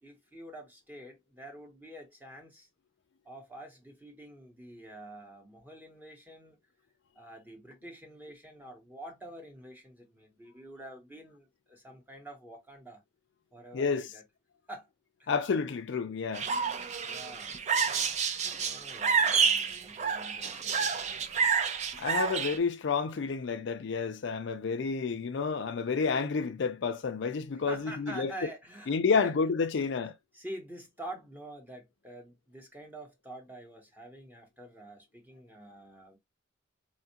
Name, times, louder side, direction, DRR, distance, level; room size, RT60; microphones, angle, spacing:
voice 1, 0.0-2.7 3.2-6.6 7.1-13.0 13.5-14.2 14.7-14.9 15.2-15.3 17.0-17.5 18.5-21.5 27.5-29.3 30.3-36.2, right 1 dB, 10° right, 0.9 m, -47 dB
voice 2, 13.7-14.1 15.3-16.5 22.0-28.3 28.9-30.2, left 5 dB, 60° left, 0.4 m, -30 dB
sound 1, 16.3-22.6, right 6 dB, 35° right, 0.4 m, -29 dB
4.3 x 2.3 x 2.7 m
head